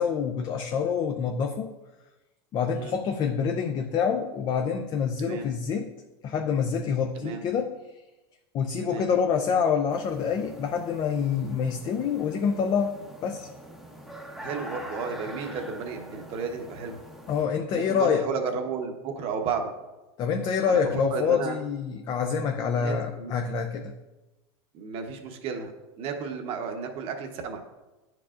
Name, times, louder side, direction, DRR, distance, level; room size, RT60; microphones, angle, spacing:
voice 1, 0.0-1.7 2.5-5.9 6.2-7.7 8.5-12.9 13.2-13.5 17.3-18.2 20.2-23.9, left 6 dB, 35° left, 4 dB, 0.4 m, -26 dB
voice 2, 5.2-5.5 7.2-7.4 8.8-9.1 14.4-16.9 17.7-19.7 20.7-20.8 21.1-21.6 22.7-23.3 24.7-25.7 26.0-27.7, right 5 dB, 45° right, 5 dB, 0.9 m, -33 dB
sound 1, 9.9-17.4, equal, ahead, 0.8 m, -43 dB
9.9 x 4.7 x 2.5 m, 1.1 s
supercardioid pair, 135°, 13 cm